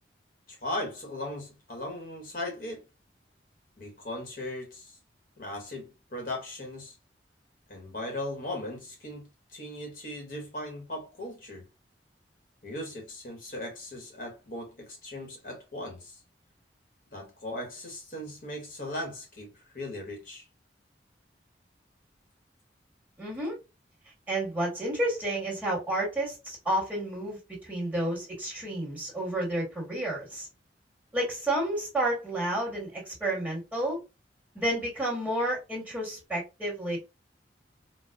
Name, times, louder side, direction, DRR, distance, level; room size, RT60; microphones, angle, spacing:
voice 1, 0.5-2.9 3.8-5.0 5.4-6.9 7.7-11.7 12.6-16.2 17.1-20.4, left 1 dB, 50° left, 1.1 m, -38 dB
voice 2, 23.2-23.6 24.3-30.5 31.1-34.0 34.5-37.0, right 1 dB, 10° right, 1.5 m, -30 dB
4.1 x 2.2 x 2.3 m
head